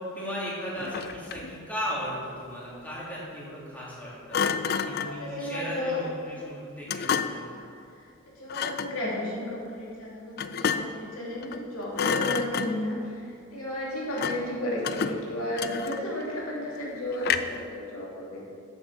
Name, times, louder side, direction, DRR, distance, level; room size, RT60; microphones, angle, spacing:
voice 1, 0.1-4.4 4.8-7.5, equal, 5° left, -7 dB, 2.3 m, -36 dB
Thump thud, 0.8-1.6 4.3-5.2 6.9-7.5 8.5-9.0 10.4-11.1 11.4-11.7 11.9-13.0 14.2-14.5 14.8-16.2 17.2-17.7, left 6 dB, 45° left, 0.3 m, -30 dB
voice 2, 4.7-6.0 7.5-7.7 8.0-8.1 8.4-18.4, left 1 dB, 85° left, -5 dB, 2.8 m, -33 dB
8.2 x 6.5 x 7.1 m, 2.4 s
head